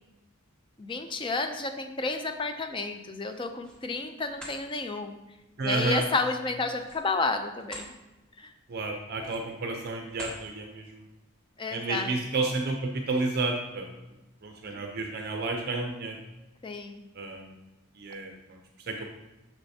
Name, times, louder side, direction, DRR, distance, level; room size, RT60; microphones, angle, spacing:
voice 1, 0.8-5.2 5.6-7.9 8.4-8.5 11.6-12.1 14.6-14.9 16.6-17.0, left 3 dB, 25° left, 6 dB, 0.4 m, -31 dB
sound 1, 3.3-3.8 4.2-4.6 6.7-7.9 8.4-8.6 9.1-9.6 10.1-10.4, equal, 5° left, 1.1 m, -44 dB
voice 2, 5.6-6.1 8.7-11.1 11.7-14.0 14.4-16.2 17.1-17.6 18.0-18.6 18.9-19.0, right 3 dB, 45° right, 3 dB, 0.5 m, -31 dB
6.6 x 6.2 x 2.7 m, 1.0 s
head